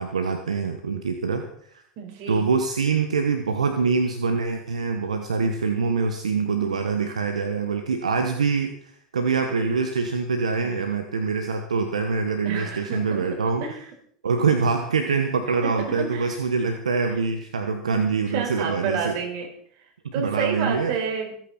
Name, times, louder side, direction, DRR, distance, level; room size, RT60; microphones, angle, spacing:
voice 1, 0.0-1.4 2.3-13.6 14.2-19.2 20.0-20.9, right 5 dB, 90° right, 6 dB, 1.3 m, -24 dB
voice 2, 2.0-2.4 10.6-10.7 12.4-13.3 13.6-13.8 15.6-15.7 16.0-16.3 18.3-19.5 20.1-21.5, right 6 dB, 60° right, 2 dB, 5.1 m, -29 dB
25.5 x 9.2 x 4.4 m, 0.62 s
hypercardioid pair, 85°, 3 cm